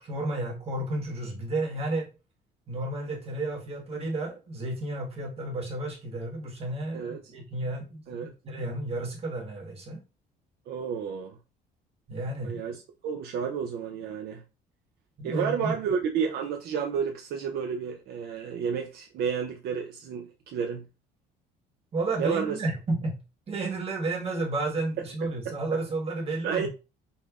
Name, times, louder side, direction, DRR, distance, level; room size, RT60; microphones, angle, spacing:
voice 1, 0.0-2.1 2.7-10.0 12.1-12.6 15.2-15.7 21.9-23.2 23.5-26.7, right 2 dB, 35° right, 1.4 m, -32 dB
voice 2, 6.9-7.3 8.1-8.3 10.7-11.4 12.4-14.4 15.2-20.9 22.2-22.6 26.4-26.7, right 7 dB, 70° right, 0.5 m, -31 dB
5.4 x 2.0 x 2.4 m
cardioid pair, 110°, 17 cm